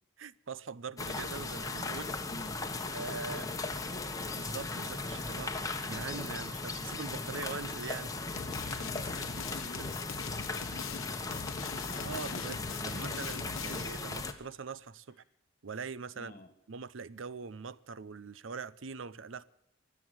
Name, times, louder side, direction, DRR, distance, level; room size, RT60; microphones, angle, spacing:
voice 1, 0.2-2.1 2.9-3.5 4.4-8.1 8.4-8.9 9.5-9.9 12.0-15.2 15.6-16.3 16.7-19.4, right 5 dB, 70° right, 0.7 m, -43 dB
sound 1, 1.0-14.3, left 3 dB, 15° left, 1.3 m, -37 dB
voice 2, 2.1-3.7 3.9-4.6 8.5-13.2 16.2-16.5, left 2 dB, 35° left, 2.0 m, -50 dB
sound 2, 8.4-14.1, left 6 dB, 85° left, 0.8 m, -42 dB
23.5 x 7.8 x 7.8 m
head